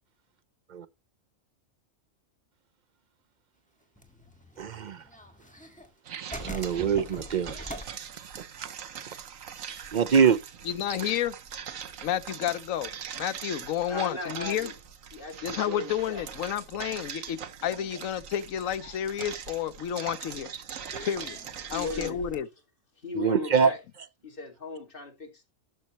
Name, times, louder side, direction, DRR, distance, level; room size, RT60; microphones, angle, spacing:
sound 1, 3.8-6.0 6.3-9.6 9.8-9.9 10.3-10.7 11.0-14.4 15.2-15.3 16.3-16.5 17.1-17.7 18.3-18.4 19.7-19.8 20.8-22.4, left 1 dB, 5° left, 1.5 m, -44 dB
voice 1, 4.6-5.1 6.4-7.6 8.3-8.7 9.9-10.4 20.7-20.8 23.1-23.7, right 6 dB, 60° right, 0.5 m, -24 dB
sound 2, 6.1-22.1, right 8 dB, 80° right, 1.4 m, -42 dB
voice 2, 10.7-11.3 12.0-12.9 13.2-14.7 15.4-20.5 21.0-21.4 21.7-22.5, left 10 dB, 80° left, 1.1 m, -30 dB
voice 3, 13.9-14.7 15.1-16.2 21.7-22.2 23.0-23.8 24.2-25.5, left 3 dB, 40° left, 2.3 m, -37 dB
12.0 x 6.5 x 3.0 m
omnidirectional pair, 1.4 m